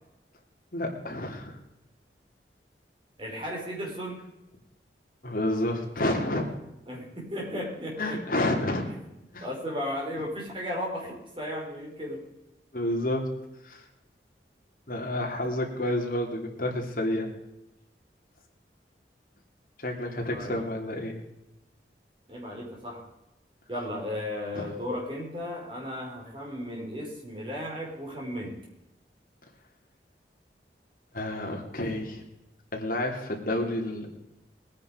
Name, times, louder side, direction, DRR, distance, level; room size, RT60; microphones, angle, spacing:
voice 1, 0.7-1.6 5.2-6.5 8.0-8.9 9.3-9.4 12.7-13.3 13.6-13.8 14.9-17.3 19.8-21.2 24.5-24.7 31.1-32.2 32.7-34.1, left 1 dB, 50° left, 0 dB, 3.1 m, -29 dB
voice 2, 3.2-4.2 6.9-8.2 8.9-9.0 9.4-12.2 20.2-20.7 22.3-23.1 23.7-28.6, left 1 dB, 30° right, -2 dB, 5.0 m, -35 dB
21.5 x 9.8 x 5.2 m, 0.93 s
head